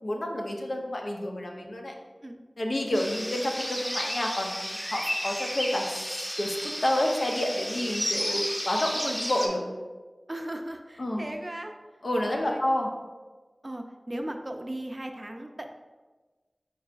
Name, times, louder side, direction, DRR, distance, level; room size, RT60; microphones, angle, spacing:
voice 1, 0.0-1.9 2.6-9.6 11.0-11.3 12.0-12.9, left 1 dB, 70° left, 1 dB, 0.6 m, -29 dB
sound 1, 2.9-9.5, equal, 10° left, 0.7 m, -32 dB
voice 2, 10.3-11.8 12.2-12.6 13.6-15.7, right 1 dB, 35° right, 4 dB, 0.4 m, -37 dB
4.8 x 4.5 x 2.4 m, 1.3 s
wide cardioid pair, 55°, 0 cm